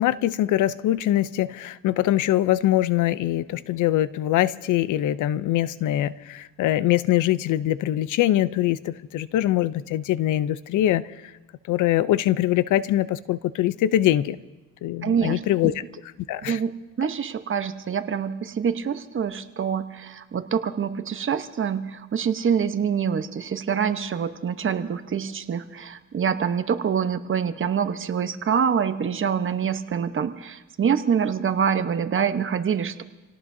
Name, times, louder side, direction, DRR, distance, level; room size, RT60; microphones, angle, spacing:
voice 1, 0.0-11.3 11.7-14.4 14.8-15.7 16.3-16.6, left 13 dB, 80° left, 16 dB, 0.6 m, -23 dB
voice 2, 15.0-15.4 16.5-16.7 17.0-33.0, right 7 dB, 40° right, 9 dB, 1.0 m, -25 dB
28.0 x 17.5 x 2.7 m, 1.1 s
cardioid pair, 90°, 30 cm